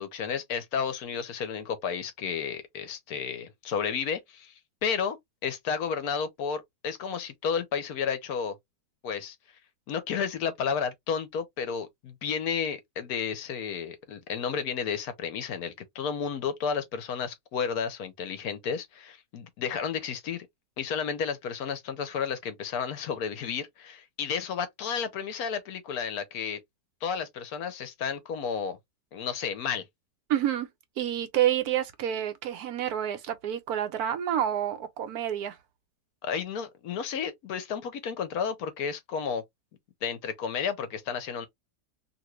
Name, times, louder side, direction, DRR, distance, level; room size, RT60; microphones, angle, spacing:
voice 1, 0.0-4.5 4.8-5.2 5.4-8.5 9.0-9.4 9.9-20.5 20.8-26.6 27.0-28.8 29.1-29.8 36.2-39.4 40.0-41.5, left 6 dB, 70° left, 1.2 m, -32 dB
voice 2, 30.3-30.7 31.0-35.6, right 11 dB, 75° right, 1.1 m, -28 dB
2.9 x 2.6 x 3.0 m
omnidirectional pair, 1.7 m